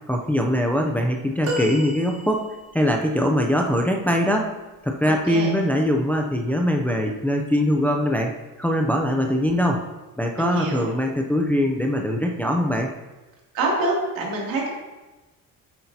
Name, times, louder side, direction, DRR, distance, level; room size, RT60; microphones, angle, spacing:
voice 1, 0.1-2.5 2.7-4.5 4.8-8.3 8.6-9.8 10.2-12.9, equal, 5° left, 2 dB, 0.4 m, -22 dB
sound 1, 1.4-2.9 5.2-5.4 6.7-6.8, equal, 45° right, 1.5 m, -32 dB
voice 2, 5.0-5.5 10.4-10.9 13.5-14.7, right 2 dB, 80° right, -3 dB, 2.6 m, -26 dB
8.6 x 7.8 x 2.8 m, 1.2 s
cardioid pair, 155°, 34 cm